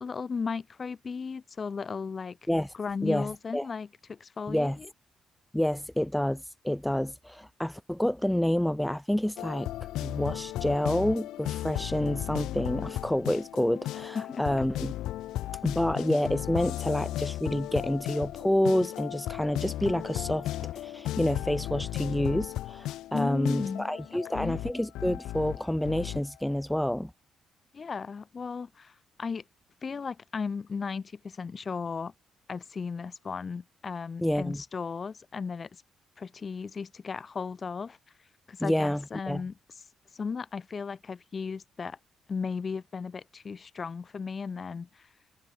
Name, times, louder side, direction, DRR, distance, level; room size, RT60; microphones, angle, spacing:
voice 1, 0.0-2.4 2.7-4.9 14.1-14.4 23.1-24.6 27.7-29.4 29.8-32.1 32.5-35.8 36.2-38.0 38.5-39.5 40.1-42.0 42.3-45.1, left 5 dB, 40° left, 0.9 m, -36 dB
voice 2, 3.0-3.7 4.5-4.8 5.5-9.7 10.0-14.9 15.6-27.1 34.2-34.6 38.6-39.4, left 1 dB, 5° left, 0.5 m, -28 dB
sound 1, 9.4-26.2, left 14 dB, 85° left, 0.5 m, -35 dB
cardioid pair, 90°, 0 cm